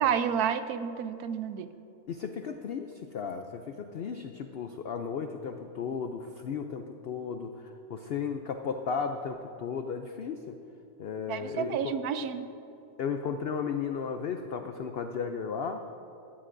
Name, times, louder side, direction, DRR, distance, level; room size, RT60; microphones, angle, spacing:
voice 1, 0.0-1.7 11.3-12.5, right 8 dB, 80° right, 11 dB, 1.1 m, -30 dB
voice 2, 2.1-10.6 11.0-11.9 13.0-15.8, left 6 dB, 75° left, 6 dB, 0.5 m, -35 dB
16.5 x 14.0 x 2.6 m, 2.8 s
omnidirectional pair, 1.6 m